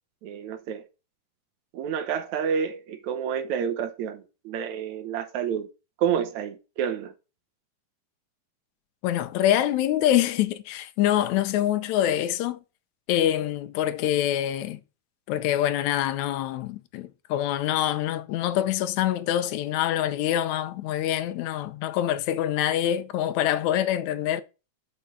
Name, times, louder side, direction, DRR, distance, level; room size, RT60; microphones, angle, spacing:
voice 1, 0.2-0.8 1.7-5.7 6.0-7.1, right 8 dB, 70° right, 2.1 m, -29 dB
voice 2, 9.0-12.6 13.1-14.8 15.3-24.4, left 12 dB, 75° left, 1.9 m, -25 dB
6.6 x 5.3 x 6.1 m
omnidirectional pair, 3.6 m